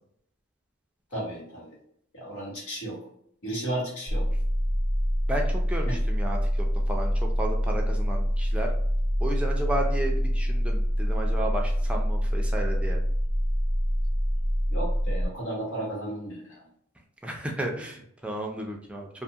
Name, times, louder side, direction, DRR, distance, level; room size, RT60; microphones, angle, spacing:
voice 1, 1.1-1.7 2.1-3.0 3.4-4.3 5.9-6.0 14.7-16.6, right 1 dB, 85° left, -5 dB, 1.4 m, -34 dB
sound 1, 4.1-15.3, equal, 35° left, 1.1 m, -25 dB
voice 2, 5.3-6.4 6.9-7.1 7.4-8.7 9.2-13.0 17.2-19.1, right 1 dB, 5° right, 0 dB, 0.3 m, -33 dB
2.5 x 2.3 x 2.7 m, 0.69 s
head